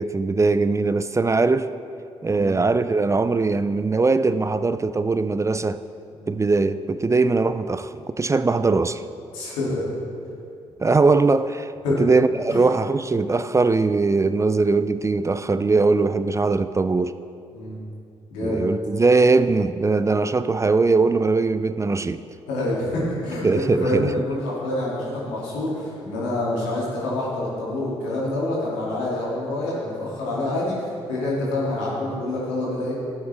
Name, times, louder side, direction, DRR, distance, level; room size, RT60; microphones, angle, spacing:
voice 1, 0.0-1.7 2.2-5.8 6.3-9.0 10.8-11.7 12.0-17.1 18.4-22.2 23.4-24.1, right 3 dB, 25° right, 13 dB, 0.4 m, -20 dB
voice 2, 9.3-9.8 11.8-12.0 12.5-12.6 17.5-17.8 18.3-18.6 22.5-32.9, left 1 dB, 85° left, -6 dB, 2.6 m, -27 dB
12.5 x 8.7 x 3.5 m, 2.7 s
hypercardioid pair, 45°, 12 cm